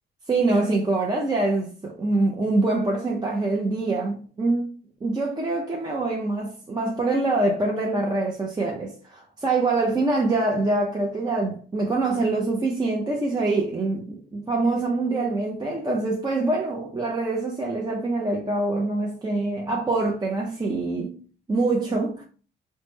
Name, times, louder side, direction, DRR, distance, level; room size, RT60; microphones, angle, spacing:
voice 1, 0.3-4.7 5.0-21.1 21.5-22.2, right 2 dB, 20° right, 0.6 m, -25 dB
3.0 x 2.1 x 3.3 m
cardioid pair, 90°, 20 cm